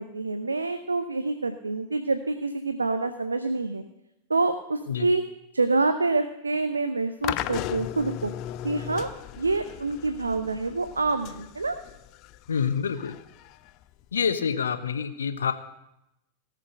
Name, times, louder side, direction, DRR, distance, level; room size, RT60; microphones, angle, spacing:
voice 1, 0.0-3.8 4.3-5.2 5.5-8.3 8.6-9.1 9.4-11.8, right 3 dB, 80° right, 9 dB, 0.7 m, -27 dB
sound 1, 7.2-14.3, left 13 dB, 40° left, 0.5 m, -37 dB
voice 2, 12.5-13.1 14.1-15.5, left 7 dB, 70° left, 10 dB, 1.0 m, -27 dB
18.0 x 6.6 x 6.5 m, 0.87 s
figure-of-eight pair, 90°, 0 cm